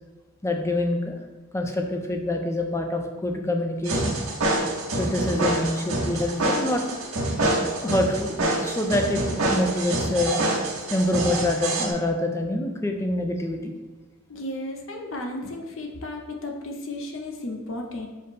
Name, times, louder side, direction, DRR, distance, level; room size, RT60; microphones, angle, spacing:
voice 1, 0.4-1.1 1.5-4.1 5.0-6.8 7.7-10.4 10.9-13.7, left 1 dB, 15° left, 3 dB, 0.4 m, -26 dB
sound 1, 3.9-11.9, right 2 dB, 90° right, 0.9 m, -26 dB
voice 2, 14.3-18.1, left 1 dB, 65° left, 2 dB, 0.6 m, -34 dB
5.0 x 2.0 x 4.1 m, 1.2 s
head